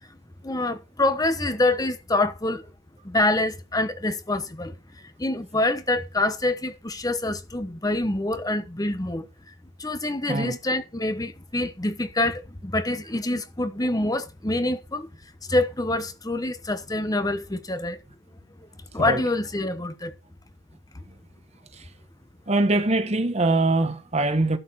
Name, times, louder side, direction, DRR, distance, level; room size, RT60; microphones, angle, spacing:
voice 1, 0.4-2.6 3.0-4.8 5.2-9.3 9.8-15.1 15.5-18.0 18.9-20.1, left 2 dB, 20° left, 1.0 m, -26 dB
voice 2, 22.5-24.6, right 2 dB, 35° right, 1.2 m, -22 dB
12.5 x 6.5 x 4.8 m
head